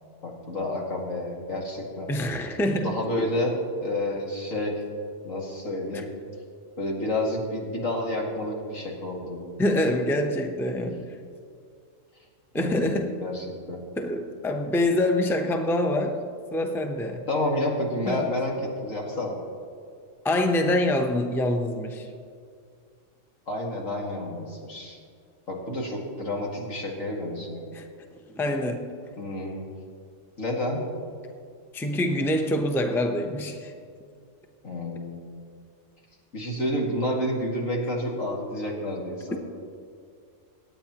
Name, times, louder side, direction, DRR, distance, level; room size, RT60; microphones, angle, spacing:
voice 1, 0.2-2.1 2.8-3.5 3.8-4.8 5.2-6.1 6.8-9.5 12.5-13.8 17.3-19.4 23.5-25.0 25.5-27.7 29.2-29.7 30.4-30.8 34.6-35.3 36.3-39.4, left 1 dB, 80° left, -2 dB, 2.5 m, -30 dB
voice 2, 2.1-3.0 5.9-6.0 9.6-11.1 12.5-13.1 14.0-16.2 16.5-17.3 18.1-18.4 20.2-22.1 27.7-27.9 28.3-28.9 31.7-33.7, left 1 dB, ahead, 4 dB, 0.6 m, -25 dB
26.5 x 8.8 x 2.9 m, 2.3 s
omnidirectional pair, 1.4 m